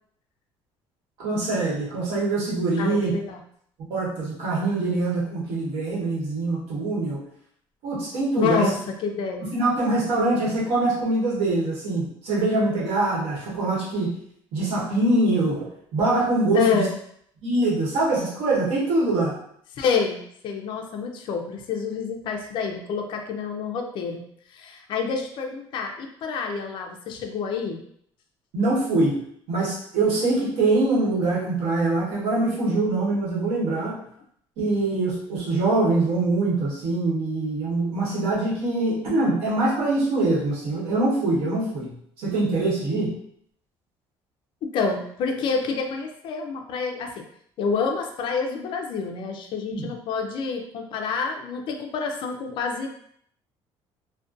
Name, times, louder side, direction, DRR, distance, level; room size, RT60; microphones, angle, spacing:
voice 1, 1.2-3.1 3.9-7.2 7.8-8.7 9.4-14.1 14.5-15.7 15.9-16.8 17.4-19.3 28.5-29.2 29.5-34.0 34.6-41.9 42.2-43.1 49.7-49.8, right 2 dB, 90° right, -6 dB, 1.1 m, -23 dB
voice 2, 2.8-3.4 8.4-9.5 16.5-16.9 19.8-24.2 24.5-27.8 44.7-47.2 47.6-52.9, left 5 dB, 50° left, 3 dB, 0.4 m, -28 dB
2.4 x 2.1 x 2.5 m, 0.67 s
cardioid pair, 145°, 10 cm